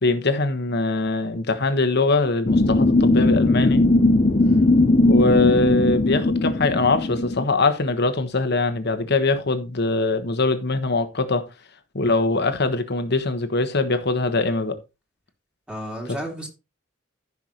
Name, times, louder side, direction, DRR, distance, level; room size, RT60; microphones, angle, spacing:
voice 1, 0.0-3.8 5.1-11.4 11.9-14.8, left 3 dB, 55° left, 1.4 m, -22 dB
sound 1, 2.4-7.4, left 2 dB, 35° left, 0.6 m, -18 dB
voice 2, 4.4-4.7 15.7-16.5, equal, 5° right, 2.5 m, -33 dB
14.5 x 6.0 x 3.1 m
head